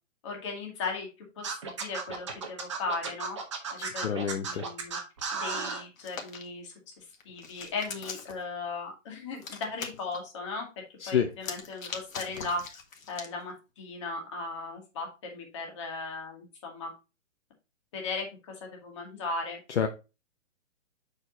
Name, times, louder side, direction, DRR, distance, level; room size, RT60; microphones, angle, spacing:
voice 1, 0.2-1.1 1.4-3.4 3.7-5.0 5.3-6.7 7.2-10.6 11.1-12.6 13.1-16.9 17.9-19.6, left 3 dB, 20° left, 1 dB, 1.5 m, -37 dB
Scratching (performance technique), 1.4-5.8, right 5 dB, 25° right, 0.8 m, -34 dB
voice 2, 3.8-4.6 11.0-11.3 19.8-19.9, left 8 dB, 60° left, 5 dB, 0.8 m, -28 dB
Hands, 6.0-6.4 7.1-8.4 9.4-10.2 11.3-13.3, left 5 dB, 85° left, 1.8 m, -41 dB
6.4 x 4.9 x 4.0 m, 0.28 s
hypercardioid pair, 175°, 39 cm